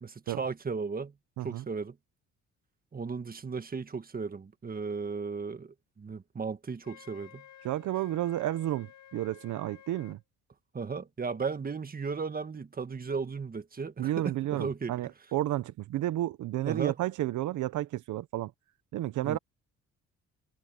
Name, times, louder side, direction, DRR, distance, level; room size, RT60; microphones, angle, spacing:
voice 1, 0.0-1.1 1.4-2.0 2.9-7.4 10.7-14.9 16.7-17.0 19.2-19.4, right 5 dB, 30° right, 1.7 m, -35 dB
Wind instrument woodwind instrument, 6.8-10.2, left 11 dB, 70° left, 6.2 m, -54 dB
voice 2, 7.6-10.2 14.0-18.5 18.9-19.4, right 14 dB, 80° right, 0.9 m, -31 dB
cardioid pair, 90°, 30 cm